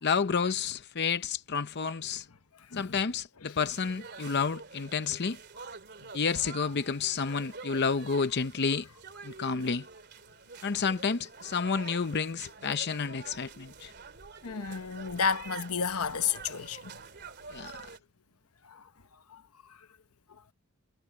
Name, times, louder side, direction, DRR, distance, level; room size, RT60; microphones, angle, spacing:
voice 1, 0.0-2.3 2.7-5.4 6.1-8.9 9.2-9.9 10.6-13.9 17.5-17.7, left 5 dB, 50° left, 0.7 m, -30 dB
sound 1, 3.6-18.0, right 4 dB, 50° right, 2.8 m, -47 dB
voice 2, 14.4-16.9 18.6-18.9 19.3-19.4 19.7-19.8 20.3-20.4, left 6 dB, 80° left, 1.0 m, -32 dB
head